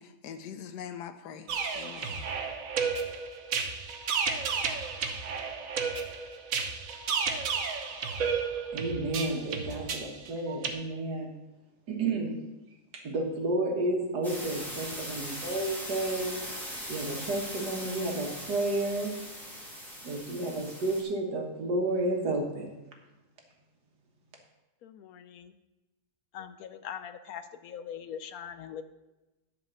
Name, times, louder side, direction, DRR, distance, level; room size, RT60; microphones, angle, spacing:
voice 1, 0.0-2.3, left 8 dB, 85° left, 9 dB, 1.3 m, -43 dB
sound 1, 1.5-10.7, right 5 dB, 60° right, 1.2 m, -32 dB
voice 2, 8.7-11.3 11.9-12.4 12.9-16.4 16.9-19.2 20.0-22.7, right 2 dB, 85° right, 2 dB, 2.1 m, -31 dB
sound 2, 14.2-21.0, equal, ahead, 2.3 m, -40 dB
voice 3, 24.8-25.6 26.3-28.8, left 8 dB, 70° left, 11 dB, 1.0 m, -42 dB
10.5 x 4.9 x 6.4 m, 1.0 s
omnidirectional pair, 1.7 m